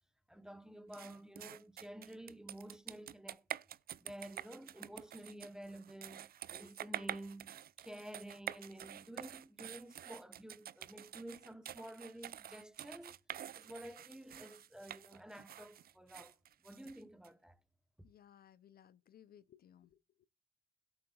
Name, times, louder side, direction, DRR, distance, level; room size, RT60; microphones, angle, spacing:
voice 1, 0.3-3.4 4.0-7.5 7.8-13.1 13.5-16.3 16.6-17.6, right 1 dB, 5° right, 0.9 m, -51 dB
sound 1, 0.9-17.3, right 10 dB, 50° right, 0.5 m, -48 dB
voice 2, 18.0-20.3, left 10 dB, 50° left, 0.5 m, -62 dB
17.5 x 7.8 x 2.3 m
cardioid pair, 90°, 20 cm